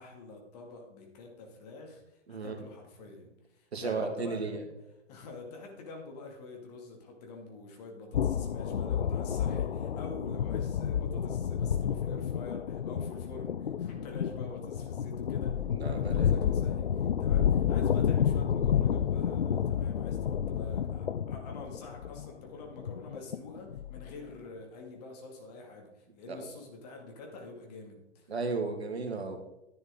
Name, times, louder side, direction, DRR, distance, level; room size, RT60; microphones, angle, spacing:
voice 1, 0.0-4.7 5.1-28.3, left 3 dB, 35° left, 1 dB, 2.4 m, -47 dB
voice 2, 2.3-2.6 3.7-4.7 15.7-16.3 26.3-26.5 28.3-29.4, right 4 dB, 60° right, 4 dB, 2.0 m, -34 dB
sound 1, 8.1-24.3, left 8 dB, 55° left, 0.5 m, -30 dB
11.0 x 10.5 x 3.8 m, 0.91 s
figure-of-eight pair, 125°, 36 cm